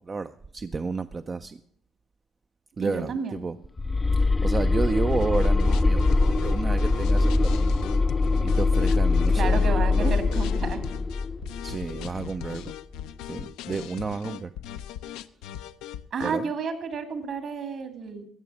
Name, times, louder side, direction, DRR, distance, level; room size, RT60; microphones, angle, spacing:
voice 1, 0.0-1.6 2.8-3.5 4.4-7.5 8.4-10.1 11.6-12.7 13.2-14.5 16.2-16.4, right 4 dB, 30° right, 9 dB, 0.4 m, -31 dB
voice 2, 2.8-3.4 9.3-10.9 16.1-18.2, right 5 dB, 60° right, 7 dB, 2.3 m, -31 dB
sound 1, 3.8-12.7, left 3 dB, 20° left, 0.5 m, -23 dB
sound 2, 5.1-16.3, left 11 dB, 85° left, 0.5 m, -39 dB
16.5 x 6.7 x 6.1 m, 0.67 s
supercardioid pair, 80°, 0 cm